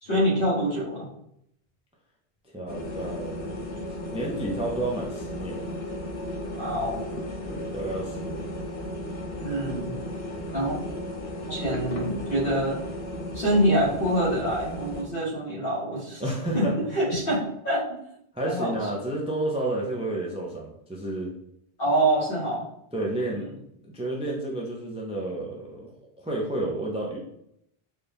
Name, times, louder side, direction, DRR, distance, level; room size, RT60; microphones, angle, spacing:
voice 1, 0.0-1.1 6.6-7.0 9.4-10.0 10.5-10.8 11.5-12.8 13.3-18.0 18.4-18.7 21.8-22.7 23.3-23.5, right 1 dB, 60° left, -6 dB, 1.7 m, -26 dB
voice 2, 2.5-3.8 4.1-5.6 7.5-8.5 16.2-16.7 18.3-21.3 22.9-23.5 23.8-25.9 26.2-27.2, right 1 dB, 10° right, -2 dB, 0.5 m, -31 dB
sound 1, 2.7-15.0, left 1 dB, 80° left, 1.0 m, -34 dB
4.2 x 2.3 x 3.4 m, 0.75 s
omnidirectional pair, 1.0 m